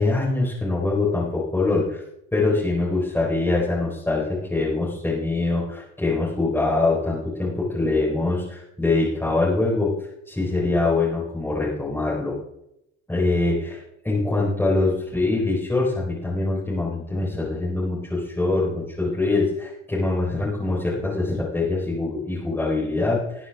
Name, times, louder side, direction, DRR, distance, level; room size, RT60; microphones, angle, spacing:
voice 1, 0.0-2.0 2.3-12.4 13.1-23.5, left 2 dB, 5° left, -7 dB, 4.2 m, -24 dB
20.0 x 9.5 x 3.6 m, 0.83 s
cardioid pair, 140°, 32 cm